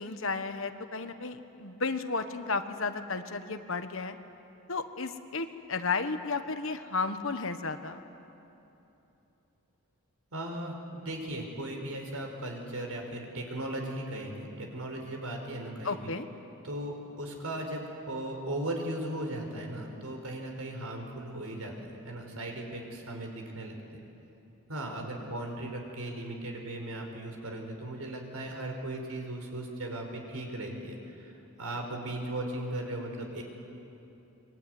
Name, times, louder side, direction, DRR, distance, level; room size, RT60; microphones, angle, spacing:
voice 1, 0.0-4.2 4.7-8.0 15.8-16.3, left 4 dB, 60° left, 8 dB, 1.3 m, -33 dB
voice 2, 10.3-16.1 16.6-24.0 24.7-31.3 31.6-33.4, right 1 dB, 80° right, 3 dB, 4.8 m, -37 dB
24.5 x 23.5 x 9.6 m, 3.0 s
head